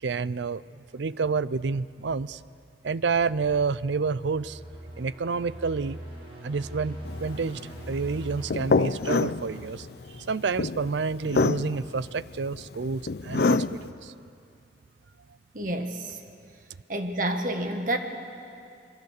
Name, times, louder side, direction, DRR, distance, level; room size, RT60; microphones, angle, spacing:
voice 1, 0.0-2.4 2.8-4.6 5.0-6.0 6.4-7.6 7.9-14.1, right 4 dB, 80° right, 18 dB, 0.5 m, -29 dB
sound 1, 2.8-10.2, right 1 dB, 30° right, 6.2 m, -43 dB
sound 2, 7.0-13.9, left 4 dB, 60° left, 0.5 m, -27 dB
voice 2, 15.5-16.2 16.9-18.0, right 1 dB, 45° right, 5 dB, 1.6 m, -29 dB
26.0 x 22.5 x 6.7 m, 2.5 s
head